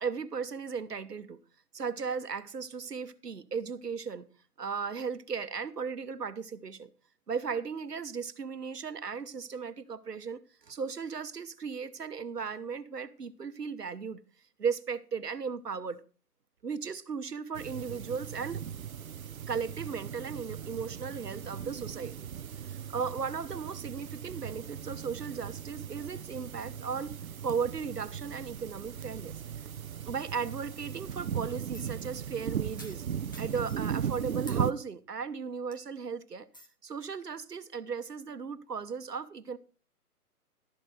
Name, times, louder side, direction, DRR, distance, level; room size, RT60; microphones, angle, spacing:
voice 1, 0.0-1.4 1.7-4.3 4.6-6.9 7.3-14.2 14.6-16.0 16.6-18.6 19.5-22.1 22.7-27.1 27.4-29.3 30.1-33.0 33.4-36.5 36.8-39.6, right 5 dB, 85° right, 1.1 m, -36 dB
sound 1, 17.5-34.7, right 8 dB, 65° right, 0.7 m, -38 dB
sound 2, 31.7-32.1 32.8-34.1 34.5-34.7 35.2-35.3 35.7-36.0 36.5-36.7, left 1 dB, 15° left, 0.5 m, -51 dB
12.5 x 11.5 x 3.3 m
figure-of-eight pair, 145°, 46 cm